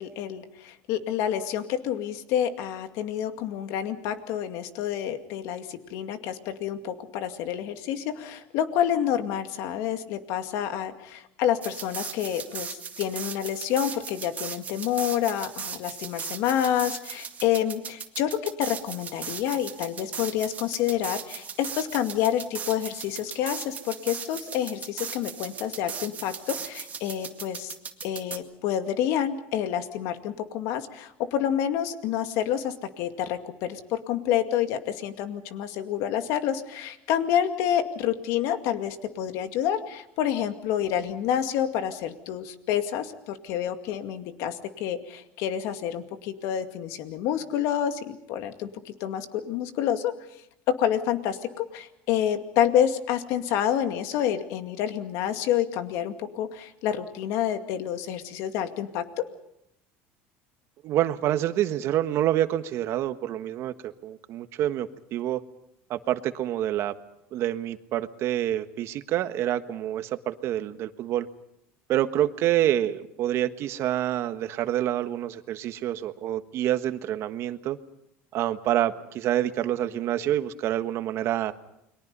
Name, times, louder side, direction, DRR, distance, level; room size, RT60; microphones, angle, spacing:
voice 1, 0.0-27.8 28.0-50.1 50.7-59.3, left 10 dB, 70° left, 7 dB, 2.3 m, -28 dB
sound 1, 11.6-28.4, right 7 dB, 25° right, 2.1 m, -38 dB
voice 2, 60.8-65.4 65.9-66.9 67.3-71.3 71.9-77.8 78.3-81.5, right 12 dB, 55° right, 10 dB, 1.4 m, -27 dB
30.0 x 23.0 x 5.5 m, 0.80 s
supercardioid pair, 125°, 5 cm